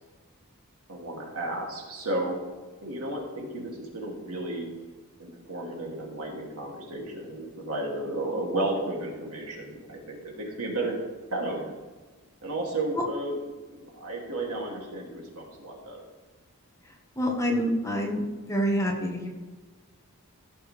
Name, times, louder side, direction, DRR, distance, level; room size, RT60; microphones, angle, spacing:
voice 1, 0.9-2.4 2.8-4.7 5.2-10.9 11.3-11.7 12.4-13.4 13.7-16.0, right 2 dB, 75° right, -1 dB, 2.6 m, -33 dB
voice 2, 17.2-18.2 18.5-19.3, equal, 15° left, 0 dB, 1.4 m, -26 dB
16.0 x 7.0 x 3.4 m, 1.3 s
head